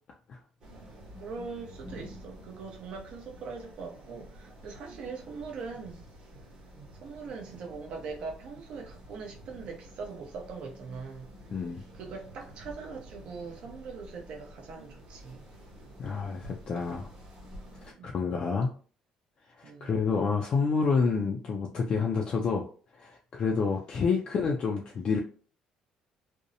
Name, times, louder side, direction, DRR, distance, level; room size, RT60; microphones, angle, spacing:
sound 1, 0.6-17.9, equal, 40° right, 1.0 m, -49 dB
voice 1, 1.1-6.0 6.9-11.3 11.9-15.4 18.0-18.2 19.6-19.9 24.0-24.2, right 4 dB, 55° right, 0.6 m, -41 dB
voice 2, 11.5-11.8 16.0-17.1 17.8-18.7 19.6-22.6 23.0-25.2, left 5 dB, 40° left, 0.3 m, -28 dB
2.6 x 2.0 x 2.6 m
cardioid pair, 145°, 2 cm